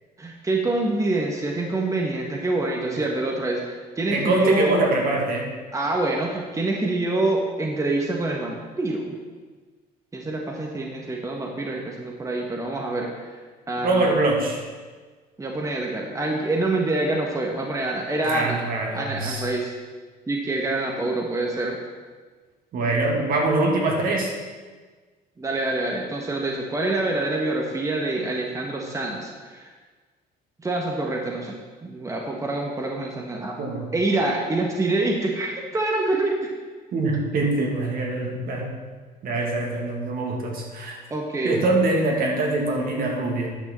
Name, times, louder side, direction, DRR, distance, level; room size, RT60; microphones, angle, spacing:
voice 1, 0.2-4.7 5.7-9.2 10.1-13.4 13.7-14.1 15.4-18.6 18.9-19.7 20.3-21.8 25.4-29.7 30.6-33.6 33.9-36.4 41.1-41.6, right 2 dB, 20° right, 0 dB, 1.5 m, -26 dB
voice 2, 4.1-5.5 13.8-14.6 18.2-19.5 22.7-24.3 33.6-33.9 36.9-38.8 39.2-41.0 41.4-43.6, right 2 dB, 60° right, 0 dB, 2.5 m, -24 dB
10.0 x 6.1 x 7.4 m, 1.4 s
cardioid pair, 110°, 17 cm